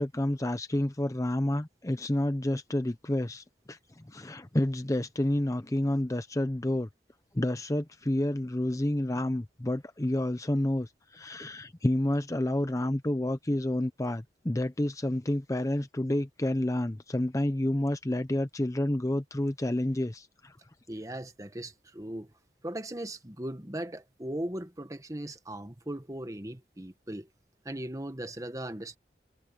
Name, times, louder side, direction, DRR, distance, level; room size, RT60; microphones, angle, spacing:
voice 1, 0.0-6.9 7.3-20.6, left 1 dB, 20° left, 0.7 m, -29 dB
voice 2, 20.9-22.3 22.6-27.3 27.6-29.0, right 1 dB, 20° right, 1.4 m, -38 dB
head